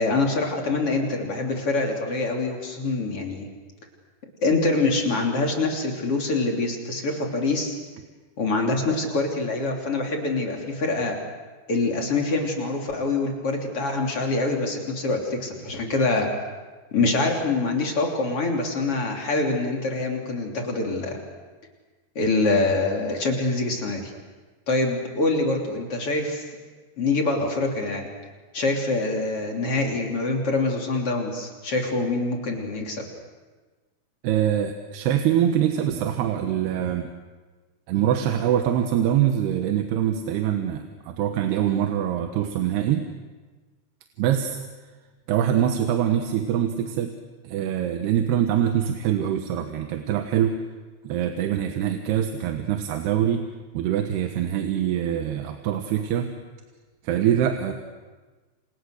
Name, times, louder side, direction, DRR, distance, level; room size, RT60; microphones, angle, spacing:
voice 1, 0.0-3.5 4.4-7.8 8.4-11.2 11.7-16.3 16.9-21.2 22.2-24.1 24.7-26.5 27.0-28.1 28.5-33.0, left 3 dB, 35° left, 1 dB, 3.7 m, -25 dB
voice 2, 34.2-37.1 37.9-43.1 44.2-44.6 45.3-47.2 47.4-50.6 51.0-53.5 53.7-56.3 57.0-57.7, right 10 dB, 90° right, 5 dB, 3.3 m, -24 dB
29.0 x 28.0 x 6.5 m, 1.3 s
omnidirectional pair, 4.6 m